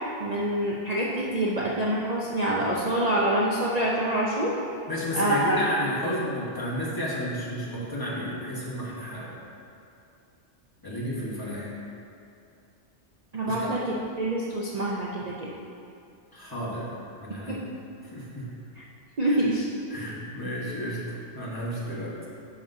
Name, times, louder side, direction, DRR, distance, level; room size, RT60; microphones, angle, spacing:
voice 1, 0.2-4.5 5.1-5.6 13.3-13.8 14.2-15.5 17.5-17.6 19.2-19.7, right 1 dB, 45° right, -5 dB, 0.7 m, -26 dB
voice 2, 4.9-9.3 10.8-11.7 13.5-13.8 16.3-17.6 18.0-18.5 19.2-19.4 19.9-22.1, equal, 20° left, -7 dB, 1.4 m, -32 dB
9.8 x 6.1 x 2.7 m, 2.5 s
omnidirectional pair, 1.2 m